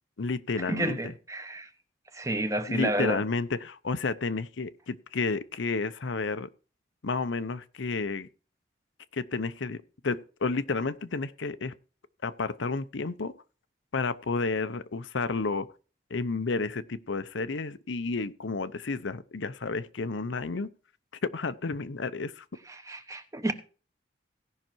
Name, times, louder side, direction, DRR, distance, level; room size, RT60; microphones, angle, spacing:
voice 1, 0.2-1.1 2.7-6.5 7.0-8.3 9.1-11.7 12.2-13.3 13.9-15.7 16.1-20.7 21.2-22.4, left 4 dB, 80° left, 0.7 m, -31 dB
voice 2, 0.7-1.7 2.1-3.2 22.7-23.5, right 1 dB, 15° right, 0.9 m, -30 dB
17.0 x 5.8 x 4.5 m
head